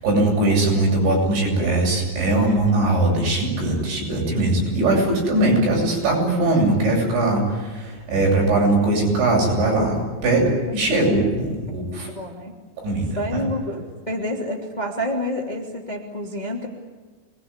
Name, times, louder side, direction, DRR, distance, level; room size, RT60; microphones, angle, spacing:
voice 1, 0.0-12.1 12.8-13.4, right 2 dB, 75° right, -1 dB, 10.5 m, -20 dB
voice 2, 12.1-12.5 13.1-16.7, left 1 dB, 10° left, 2 dB, 2.7 m, -28 dB
26.5 x 21.5 x 9.9 m, 1.4 s
omnidirectional pair, 5.2 m